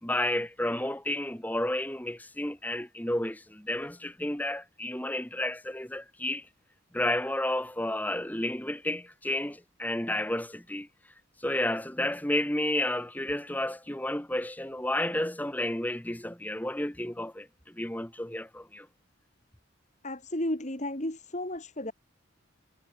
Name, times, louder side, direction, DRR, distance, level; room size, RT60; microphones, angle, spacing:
voice 1, 0.0-6.4 6.9-10.9 11.4-17.5 17.7-18.9, left 1 dB, 10° left, 1.4 m, -31 dB
voice 2, 20.0-21.9, left 1 dB, 35° left, 2.6 m, -33 dB
head